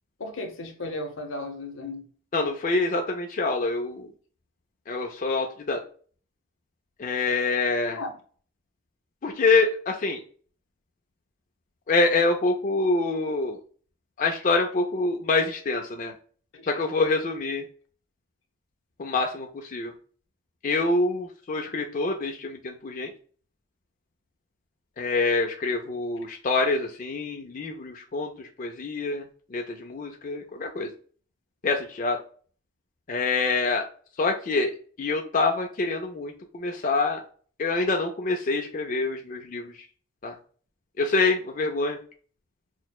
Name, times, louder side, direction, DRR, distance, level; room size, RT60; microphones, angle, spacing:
voice 1, 0.2-2.1 7.9-8.1 16.5-16.8, left 2 dB, 70° left, 0.8 m, -35 dB
voice 2, 2.3-4.1 4.9-5.8 7.0-8.0 9.2-10.2 11.9-13.6 14.2-16.1 16.7-17.6 19.0-19.9 20.6-23.1 25.0-29.3 29.5-30.9 31.6-32.2 33.1-33.8 34.2-34.7 35.0-37.2 37.6-39.7 40.2-40.4 41.0-42.0, left 3 dB, 40° left, 0.4 m, -26 dB
6.1 x 2.1 x 2.2 m
head